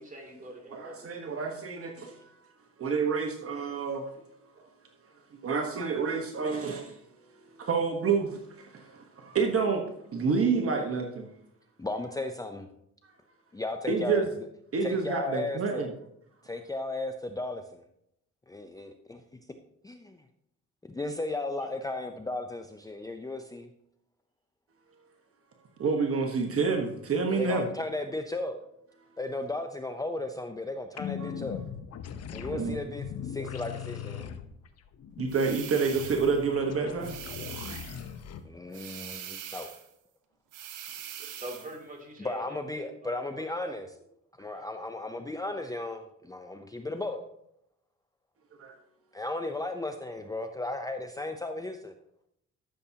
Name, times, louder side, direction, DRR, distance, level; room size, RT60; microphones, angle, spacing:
voice 1, 0.0-1.4 21.5-21.8 41.4-43.9, right 1 dB, 25° right, 1 dB, 2.7 m, -45 dB
voice 2, 0.7-2.2 2.8-4.1 5.4-6.9 7.6-9.8 10.1-11.3 13.9-14.3 14.7-15.9 25.8-27.6 31.2-31.3 32.5-32.8 35.2-37.2 48.6-48.7, right 5 dB, 50° right, 3 dB, 1.2 m, -28 dB
voice 3, 11.8-12.7 13.5-14.5 14.8-15.9 16.4-17.8 18.5-19.2 19.8-20.2 20.8-23.7 27.3-28.6 29.2-31.6 32.3-34.3 38.4-39.7 42.2-43.9 44.4-47.2 49.1-51.9, left 2 dB, 10° left, 6 dB, 0.6 m, -35 dB
sound 1, 31.0-38.4, left 8 dB, 55° left, 0.8 m, -39 dB
sound 2, 35.3-36.4 37.0-38.1 38.7-39.9 40.5-41.8, right 10 dB, 90° right, 1.1 m, -42 dB
12.5 x 7.1 x 2.8 m, 0.77 s
cardioid pair, 90°, 30 cm